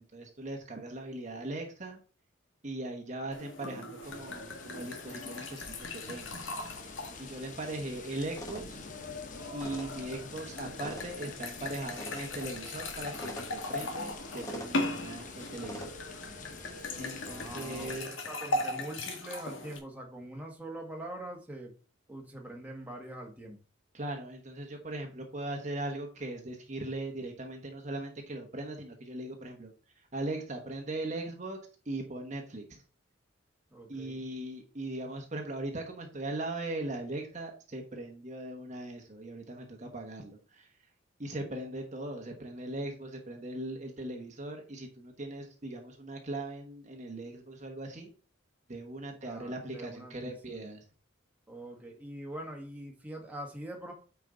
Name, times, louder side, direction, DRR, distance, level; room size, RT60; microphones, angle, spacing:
voice 1, 0.0-2.0 2.6-6.4 7.2-8.8 9.5-15.9 17.0-18.1 23.9-31.6 31.8-32.8 33.9-40.8 41.2-48.1 48.7-50.8, right 2 dB, 35° right, 2 dB, 1.2 m, -39 dB
sound 1, 3.3-19.8, left 2 dB, 70° left, 1.7 m, -39 dB
sound 2, 4.0-18.0, left 4 dB, 40° left, 0.8 m, -48 dB
sound 3, 8.3-15.9, equal, 15° left, 1.1 m, -47 dB
voice 2, 17.2-21.7 22.1-23.6 33.7-34.3 49.2-50.7 51.5-53.9, right 1 dB, 10° right, 0 dB, 1.6 m, -43 dB
9.0 x 4.7 x 3.9 m, 0.38 s
head